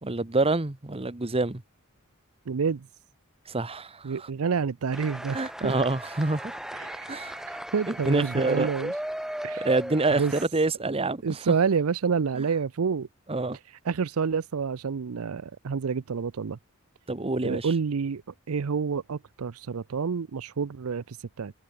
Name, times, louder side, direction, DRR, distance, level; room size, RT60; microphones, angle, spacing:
voice 1, 0.0-1.6 3.5-4.3 5.3-6.6 7.1-7.4 7.9-8.7 9.6-11.5 13.3-13.6 17.1-17.7, right 2 dB, 25° right, 1.1 m, -27 dB
voice 2, 2.5-2.9 4.0-5.7 6.7-7.1 7.5-8.9 9.4-9.7 10.1-10.3 11.2-13.1 13.9-16.6 17.4-18.2 18.5-21.5, right 5 dB, 80° right, 0.5 m, -28 dB
sound 1, 4.9-10.5, equal, ahead, 0.7 m, -37 dB
head